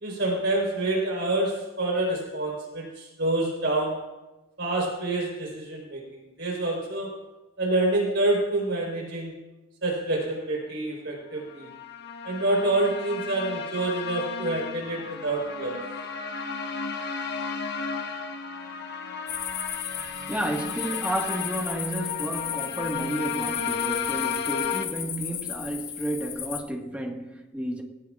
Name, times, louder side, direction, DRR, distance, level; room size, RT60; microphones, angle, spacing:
voice 1, 0.0-4.1 4.6-7.2 7.6-9.3 9.8-11.7 12.2-15.8, right 2 dB, 60° right, 4.3 m, -27 dB
sound 1, 11.5-24.8, left 6 dB, 55° left, 1.2 m, -34 dB
sound 2, 19.3-26.6, left 10 dB, 85° left, 1.6 m, -35 dB
voice 2, 20.3-27.8, right 1 dB, 5° right, 1.6 m, -31 dB
20.5 x 17.5 x 2.5 m
head